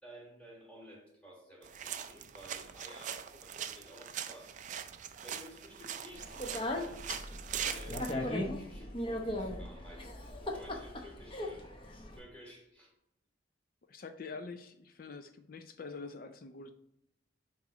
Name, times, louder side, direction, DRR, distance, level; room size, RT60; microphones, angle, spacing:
voice 1, 0.0-4.7 5.2-7.4 7.6-11.7 12.1-12.9, equal, 5° left, -2 dB, 1.8 m, -54 dB
sound 1, 1.6-8.1, right 9 dB, 40° right, 0.3 m, -42 dB
Speech, 6.2-12.2, left 1 dB, 25° left, 0.8 m, -38 dB
voice 2, 13.9-16.7, left 4 dB, 45° left, 8 dB, 0.4 m, -45 dB
7.2 x 3.0 x 4.8 m, 0.77 s
head